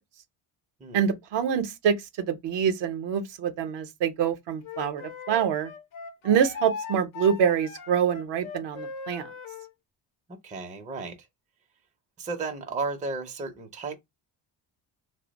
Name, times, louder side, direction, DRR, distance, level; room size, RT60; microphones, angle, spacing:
voice 1, 0.9-5.7 6.2-9.3, right 8 dB, 60° right, 0.7 m, -26 dB
Wind instrument woodwind instrument, 4.6-9.7, left 5 dB, 90° left, 0.7 m, -39 dB
voice 2, 10.3-11.2 12.2-14.0, right 4 dB, 15° right, 0.5 m, -34 dB
2.8 x 2.0 x 3.9 m
cardioid pair, 110°, 47 cm